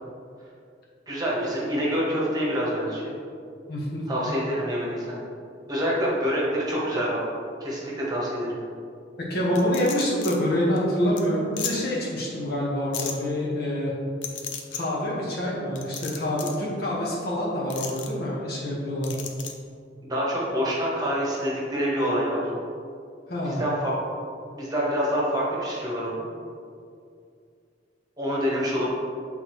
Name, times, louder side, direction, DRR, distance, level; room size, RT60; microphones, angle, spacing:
voice 1, 1.1-3.1 4.1-5.2 5.7-7.2 7.6-8.5 20.1-22.4 23.4-23.9 24.5-26.2 28.2-28.8, equal, 20° right, -6 dB, 1.3 m, -26 dB
voice 2, 3.7-4.0 9.3-13.9 14.7-19.2 23.3-23.6, equal, 60° left, -5 dB, 1.4 m, -26 dB
sound 1, 9.5-10.3 10.8-10.9 11.2-11.3 11.6-11.7 12.9-13.1 14.2-14.8 15.7-16.6 17.7-18.1 19.0-19.5, left 7 dB, 90° left, 0.6 m, -33 dB
8.3 x 3.7 x 3.1 m, 2.4 s
head